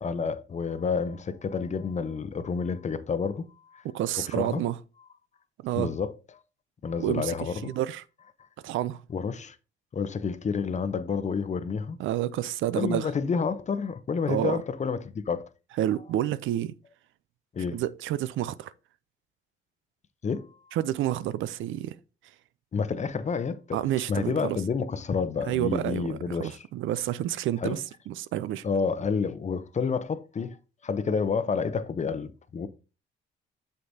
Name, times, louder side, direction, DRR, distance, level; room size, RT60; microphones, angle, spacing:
voice 1, 0.0-3.8 4.3-4.6 5.8-6.1 6.8-7.8 9.1-9.6 9.9-12.0 12.7-15.4 17.5-17.8 20.2-20.8 22.7-23.8 24.1-26.7 27.6-27.8 28.6-30.6 30.8-32.7, left 5 dB, 35° left, 0.8 m, -29 dB
voice 2, 3.8-4.8 5.6-5.9 7.0-7.3 7.6-8.0 8.6-9.0 12.0-13.1 14.3-14.6 15.8-16.7 17.7-18.7 20.7-22.0 23.7-24.6 25.5-28.6, right 12 dB, 80° right, 0.5 m, -29 dB
8.0 x 6.7 x 2.7 m
cardioid pair, 90°, 20 cm